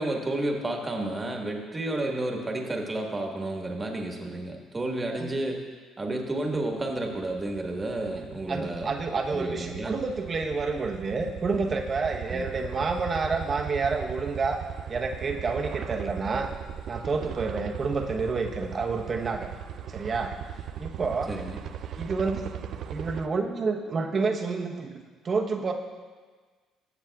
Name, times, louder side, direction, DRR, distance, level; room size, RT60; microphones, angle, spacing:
voice 1, 0.0-5.6 6.0-8.9 9.3-10.0 12.3-12.5 21.3-21.6, right 1 dB, 25° right, 2 dB, 1.4 m, -31 dB
sound 1, 6.6-23.3, right 9 dB, 60° right, 0.3 m, -39 dB
voice 2, 8.5-14.6 14.9-16.5 16.9-19.5 19.9-20.3 20.8-21.3 21.9-22.7 22.9-24.9 25.2-25.7, right 4 dB, 40° right, 2 dB, 0.9 m, -29 dB
14.0 x 7.1 x 2.3 m, 1.5 s
supercardioid pair, 75°, 0 cm